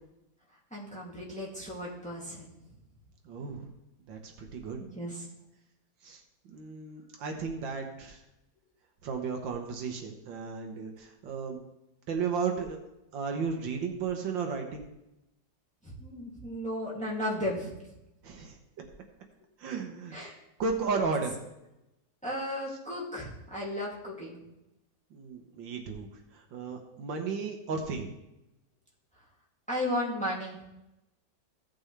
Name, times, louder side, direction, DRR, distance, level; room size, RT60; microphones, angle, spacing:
voice 1, 0.7-2.5 4.8-5.3 15.8-17.7 20.1-20.4 22.2-24.4 29.7-30.6, left 1 dB, 5° left, -5 dB, 2.3 m, -35 dB
voice 2, 3.3-3.7 4.1-4.8 6.0-6.2 6.5-8.2 9.0-11.6 12.1-12.8 13.1-14.9 18.2-18.6 19.6-20.2 20.6-21.3 25.1-26.1 26.3-28.1, right 5 dB, 75° right, 3 dB, 1.8 m, -34 dB
15.5 x 6.1 x 3.3 m, 0.92 s
omnidirectional pair, 2.1 m